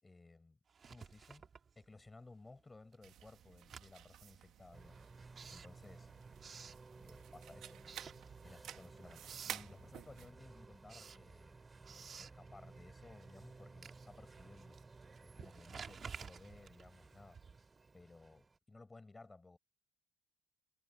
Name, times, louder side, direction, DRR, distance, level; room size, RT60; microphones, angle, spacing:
voice 1, 0.0-0.6 0.9-1.5 1.8-5.0 5.3-6.1 7.0-7.9 8.4-11.6 12.2-14.8 15.2-17.4 17.9-19.6, left 3 dB, 15° left, 7.5 m, -58 dB
Writing, 0.7-2.3 2.6-7.4 7.8-8.8 9.0-9.7 10.1-17.8, right 6 dB, 35° right, 2.6 m, -55 dB
sound 1, 3.0-10.3, right 11 dB, 65° right, 1.4 m, -53 dB
sound 2, 4.7-18.6, right 3 dB, 20° right, 6.0 m, -57 dB
cardioid pair, 100°, 0 cm